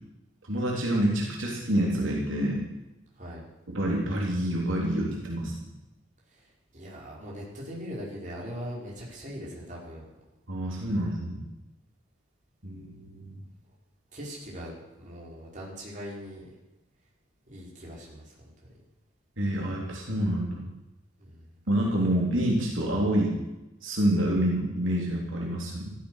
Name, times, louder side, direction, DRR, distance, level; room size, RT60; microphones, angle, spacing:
voice 1, 0.5-2.6 3.7-5.5 10.5-11.5 12.6-13.4 19.4-20.6 21.7-23.4 23.8-25.9, right 1 dB, 75° right, -2 dB, 3.6 m, -27 dB
voice 2, 6.7-10.0 14.1-16.4 17.5-18.3 21.2-21.5, equal, 40° right, -4 dB, 5.1 m, -40 dB
15.0 x 14.0 x 6.6 m, 1.0 s
head